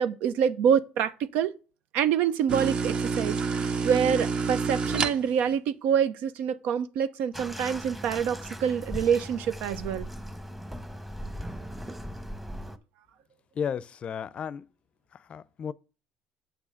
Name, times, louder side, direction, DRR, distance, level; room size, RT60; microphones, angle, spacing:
voice 1, 0.0-1.5 1.9-10.1, right 8 dB, 75° right, 0.8 m, -26 dB
sound 1, 2.5-5.5, right 5 dB, 40° right, 1.0 m, -28 dB
Bathtub (filling or washing), 7.3-12.8, equal, 5° right, 1.0 m, -38 dB
voice 2, 13.5-14.7 15.1-15.7, left 7 dB, 45° left, 0.5 m, -34 dB
8.0 x 6.2 x 5.0 m
supercardioid pair, 95°, 3 cm